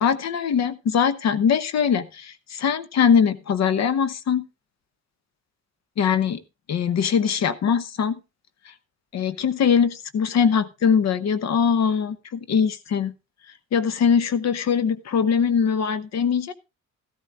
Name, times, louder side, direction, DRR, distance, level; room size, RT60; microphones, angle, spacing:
voice 1, 0.0-4.5 6.0-6.4 6.7-8.2 9.1-13.1 13.7-16.5, left 7 dB, 60° left, 14 dB, 1.0 m, -22 dB
13.5 x 13.0 x 2.4 m, 0.27 s
cardioid pair, 90°, 30 cm